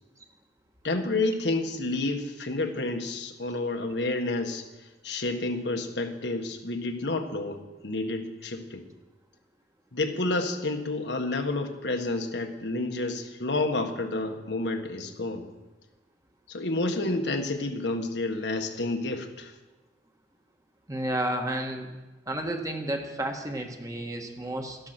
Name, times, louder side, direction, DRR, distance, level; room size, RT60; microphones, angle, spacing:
voice 1, 0.8-4.6 5.0-8.8 9.9-15.5 16.5-19.5, left 2 dB, 80° left, 5 dB, 1.6 m, -30 dB
voice 2, 20.9-21.9 22.3-24.8, right 1 dB, 20° right, 4 dB, 1.5 m, -31 dB
13.5 x 12.0 x 6.0 m, 1.1 s
head